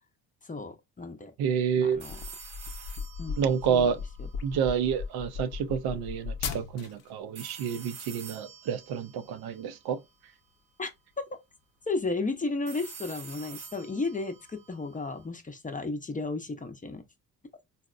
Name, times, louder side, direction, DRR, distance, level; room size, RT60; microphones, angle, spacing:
voice 1, 0.4-1.3 1.7-2.2 3.2-3.9 10.8-10.9 11.9-17.0, left 3 dB, 20° left, 0.6 m, -34 dB
voice 2, 1.4-2.0 3.4-4.0 4.4-10.0, right 7 dB, 65° right, 0.5 m, -29 dB
sound 1, 1.9-7.1, left 6 dB, 60° left, 0.7 m, -37 dB
sound 2, 2.0-5.0 7.3-10.5 12.7-15.3, right 5 dB, 85° right, 0.9 m, -48 dB
4.0 x 2.1 x 2.4 m
hypercardioid pair, 50°, 41 cm